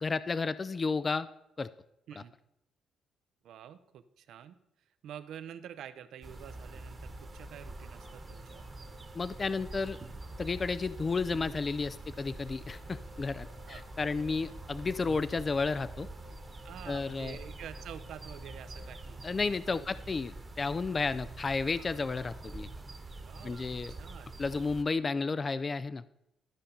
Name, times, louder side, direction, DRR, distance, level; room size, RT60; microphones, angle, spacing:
voice 1, 0.0-1.3 1.6-1.7 9.1-10.0 10.4-16.1 16.9-17.4 19.2-22.7 23.4-23.9 24.4-26.0, left 4 dB, 35° left, 16 dB, 0.3 m, -32 dB
voice 2, 3.4-4.6 5.0-8.7 13.7-13.9 16.6-19.2 19.7-19.9 23.3-24.3, right 9 dB, 75° right, 12 dB, 0.6 m, -48 dB
sound 1, 6.2-24.8, right 2 dB, 30° right, 1.1 m, -45 dB
sound 2, 6.7-19.2, left 4 dB, 75° left, 0.9 m, -58 dB
12.5 x 5.3 x 4.3 m, 0.82 s
cardioid pair, 90°, 0 cm